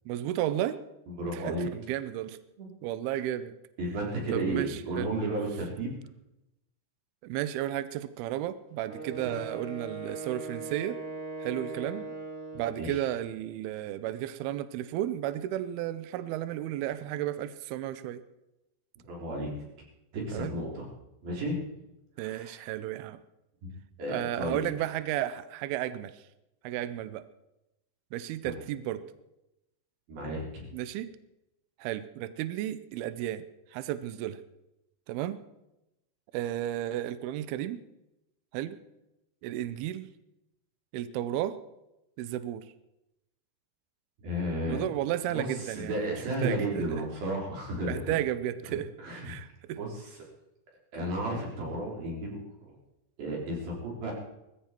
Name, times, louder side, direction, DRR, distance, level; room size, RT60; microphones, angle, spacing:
voice 1, 0.1-0.8 1.3-2.4 2.8-3.5 4.3-5.1 7.2-11.0 11.4-12.1 12.5-18.2 20.3-20.5 22.2-23.2 24.1-26.2 26.6-27.2 28.1-29.0 30.7-31.1 31.8-33.5 33.7-34.4 35.1-35.4 36.3-37.8 38.5-38.8 39.4-40.1 40.9-41.6 42.2-42.7 44.7-46.1 46.4-46.6 46.9-47.0 47.9-48.9 49.2-49.8, right 12 dB, 90° right, 13 dB, 2.2 m, -33 dB
voice 2, 1.2-1.7 2.6-2.7 3.8-5.9 12.5-13.0 19.1-19.5 20.1-20.9 21.2-21.6 22.2-22.6 23.6-23.7 24.0-24.6 30.1-30.7 44.2-44.9 45.3-48.1 49.0-49.3 49.8-50.2 50.9-52.4 52.7-52.8 53.2-54.1, right 1 dB, 50° right, -2 dB, 5.5 m, -33 dB
Wind instrument woodwind instrument, 8.8-12.9, right 3 dB, 25° right, 5.9 m, -39 dB
19.0 x 15.0 x 4.5 m, 0.92 s
omnidirectional pair, 5.4 m